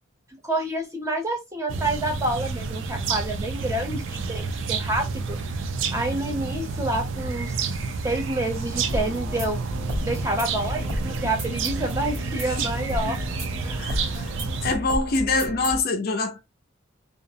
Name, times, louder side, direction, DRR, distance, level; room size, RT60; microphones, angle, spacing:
voice 1, 0.4-5.4 5.9-7.5 8.0-9.6 10.0-13.2 13.6-13.9, right 1 dB, 15° right, 0.6 m, -28 dB
sound 1, 1.7-14.7, right 4 dB, 65° right, 0.4 m, -30 dB
sound 2, 8.7-15.8, equal, 80° right, 1.1 m, -33 dB
voice 2, 13.8-16.4, left 3 dB, 50° left, 0.4 m, -26 dB
2.4 x 2.0 x 2.6 m
head